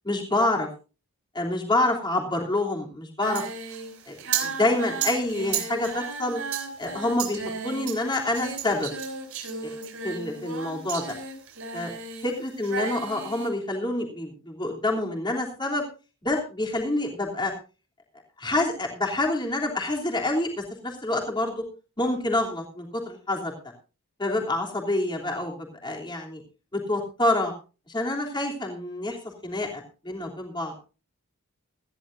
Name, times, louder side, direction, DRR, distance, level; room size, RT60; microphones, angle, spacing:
voice 1, 0.0-0.7 1.3-3.4 4.1-6.4 6.8-8.9 9.6-9.7 10.0-11.1 11.7-11.9 12.2-15.8 16.2-17.5 18.4-21.6 22.0-23.5 24.2-26.4 26.7-27.5 27.9-29.2 29.4-30.7, left 2 dB, 20° left, 0 dB, 3.1 m, -27 dB
Singing, 3.2-12.3 12.6-13.5, right 6 dB, 70° right, 4.7 m, -34 dB
18.0 x 14.5 x 2.6 m, 0.33 s
head